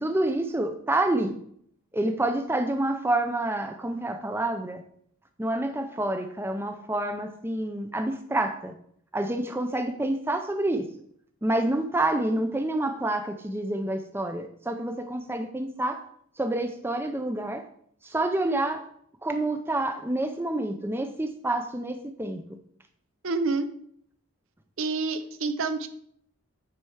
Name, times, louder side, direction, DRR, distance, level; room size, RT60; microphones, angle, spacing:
voice 1, 0.0-1.4 1.9-4.8 5.4-8.7 9.1-10.9 11.4-16.0 16.4-17.7 18.0-18.8 19.2-22.4, right 1 dB, 10° right, 7 dB, 0.5 m, -28 dB
voice 2, 23.2-23.7 24.8-25.9, right 3 dB, 65° right, 11 dB, 0.7 m, -28 dB
9.4 x 4.4 x 4.8 m, 0.66 s
head